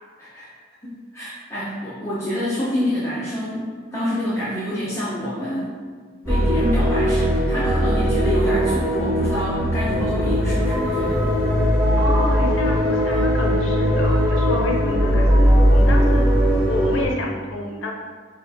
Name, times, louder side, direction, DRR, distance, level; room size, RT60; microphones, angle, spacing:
voice 1, 0.8-5.8 6.3-11.4, equal, 15° left, -11 dB, 0.7 m, -27 dB
sound 1, 6.2-17.1, equal, 10° right, 1.5 m, -19 dB
voice 2, 12.0-16.3 16.6-17.9, left 1 dB, 80° left, 0 dB, 0.6 m, -29 dB
6.0 x 2.5 x 2.7 m, 1.6 s
head